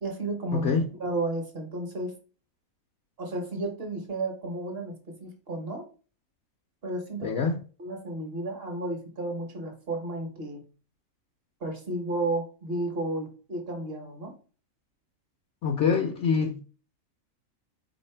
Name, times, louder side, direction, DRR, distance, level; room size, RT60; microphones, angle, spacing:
voice 1, 0.0-0.7 1.0-2.2 3.2-5.9 6.8-7.4 7.8-10.6 11.6-14.3, right 2 dB, 50° right, 1.0 m, -32 dB
voice 2, 0.5-0.8 7.2-7.6 15.6-16.6, left 5 dB, 65° left, 0.8 m, -25 dB
4.1 x 2.7 x 4.3 m
omnidirectional pair, 1.5 m